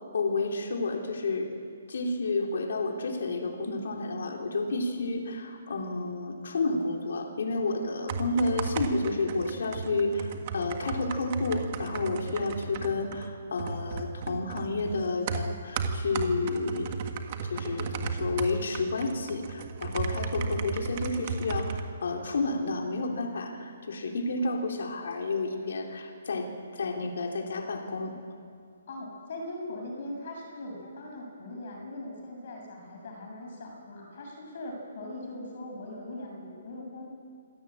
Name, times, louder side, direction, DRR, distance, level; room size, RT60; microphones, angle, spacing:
voice 1, 0.1-1.5 1.9-16.9 17.4-28.1, left 3 dB, 65° left, 2 dB, 3.8 m, -30 dB
sound 1, 7.9-21.8, right 4 dB, 30° right, 1.7 m, -35 dB
voice 2, 28.9-37.1, left 1 dB, 45° left, 0 dB, 6.7 m, -40 dB
26.0 x 17.0 x 8.7 m, 2.3 s
hypercardioid pair, 170°, 0 cm